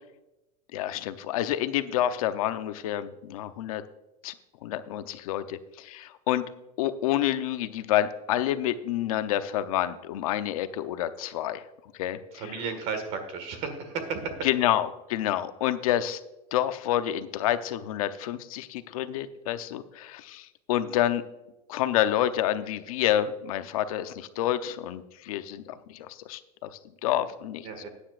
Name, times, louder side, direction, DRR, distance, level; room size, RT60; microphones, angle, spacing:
voice 1, 0.7-3.8 4.2-4.3 4.6-6.4 6.8-11.6 12.0-12.4 14.4-16.2 16.5-21.2 21.7-26.7 27.0-27.9, left 12 dB, 60° left, 11 dB, 0.8 m, -28 dB
voice 2, 12.3-14.5 27.6-27.9, right 5 dB, 35° right, 7 dB, 1.8 m, -33 dB
15.0 x 9.9 x 2.5 m, 0.95 s
supercardioid pair, 175°, 20 cm